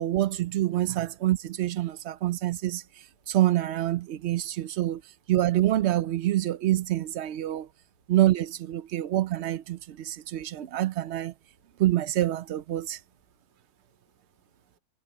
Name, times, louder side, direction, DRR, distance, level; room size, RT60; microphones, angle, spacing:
voice 1, 0.0-2.8 3.3-5.0 5.3-7.7 8.1-11.3 11.8-13.0, right 14 dB, 65° right, 0.6 m, -26 dB
voice 2, 1.9-3.4 4.1-5.0 7.5-8.1 8.8-9.2 9.8-10.8 11.3-11.8 12.8-14.8, right 3 dB, 80° right, 3.9 m, -69 dB
omnidirectional pair, 1.7 m